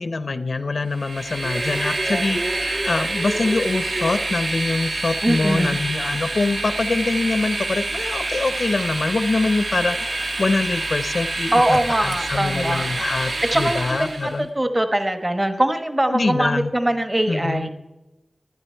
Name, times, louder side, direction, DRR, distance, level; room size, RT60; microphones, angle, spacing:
voice 1, 0.0-14.5 16.1-16.7 17.3-17.7, left 3 dB, 65° left, 13 dB, 0.6 m, -24 dB
Train, 0.9-14.4, right 2 dB, 70° right, 2.0 m, -27 dB
voice 2, 5.2-5.8 11.5-12.9 13.4-17.7, right 1 dB, 25° right, 8 dB, 1.2 m, -22 dB
19.5 x 12.0 x 4.5 m, 0.97 s
wide cardioid pair, 75°, 0 cm